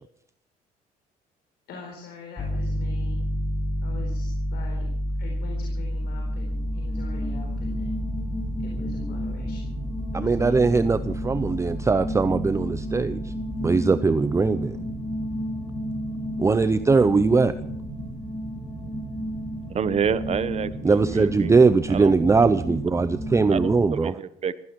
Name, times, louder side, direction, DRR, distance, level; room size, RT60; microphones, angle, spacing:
voice 1, 1.7-3.2 3.8-4.9 5.2-7.9 8.6-9.7 10.1-10.7, left 4 dB, 70° left, 1 dB, 4.2 m, -43 dB
Piano, 2.4-13.7, equal, 35° left, 3.6 m, -30 dB
sound 1, 5.6-23.8, equal, 15° left, 4.2 m, -33 dB
voice 2, 10.1-13.2 13.6-14.7 16.4-17.5 20.8-24.1, right 4 dB, 15° right, 13 dB, 0.6 m, -20 dB
voice 3, 19.7-21.5 21.9-22.1 23.5-24.5, right 7 dB, 40° right, 15 dB, 1.1 m, -28 dB
16.0 x 14.5 x 6.1 m, 0.68 s
cardioid pair, 110°, 17 cm